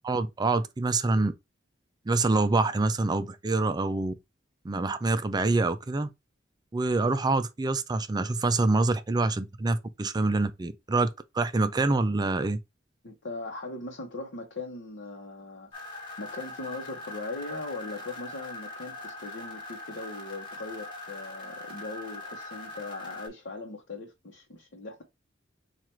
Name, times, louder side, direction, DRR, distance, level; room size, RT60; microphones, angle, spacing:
voice 1, 0.0-1.3 2.1-4.1 4.6-6.1 6.7-11.1 11.3-12.6, right 3 dB, 20° right, 0.4 m, -26 dB
voice 2, 13.0-25.0, left 2 dB, 65° left, 0.9 m, -40 dB
sound 1, 15.7-23.3, left 2 dB, 25° left, 1.5 m, -41 dB
4.5 x 2.5 x 4.4 m
head